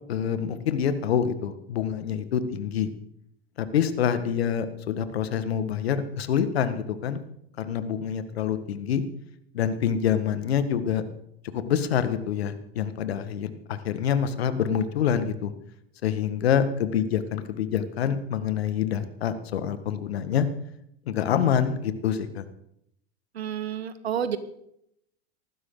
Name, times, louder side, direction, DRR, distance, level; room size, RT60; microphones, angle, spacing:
voice 1, 0.1-2.9 3.6-7.2 7.6-9.0 9.5-11.0 11.5-15.5 16.0-20.5 21.1-22.4, left 8 dB, 75° left, 11 dB, 1.9 m, -26 dB
voice 2, 23.3-24.4, right 8 dB, 80° right, 12 dB, 1.7 m, -29 dB
19.0 x 15.0 x 4.0 m, 0.74 s
hypercardioid pair, 90°, 31 cm